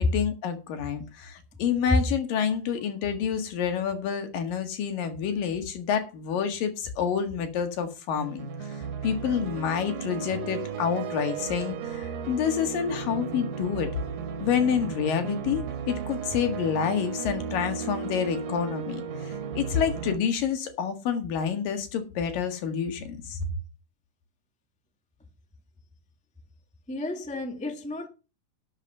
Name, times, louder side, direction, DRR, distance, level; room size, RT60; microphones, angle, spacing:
voice 1, 0.0-13.9 14.4-23.5, left 7 dB, 70° left, 3.4 m, -28 dB
sound 1, 8.2-20.2, right 6 dB, 75° right, 3.2 m, -35 dB
voice 2, 26.9-28.1, left 2 dB, 5° left, 0.5 m, -33 dB
12.0 x 7.5 x 5.5 m
omnidirectional pair, 4.1 m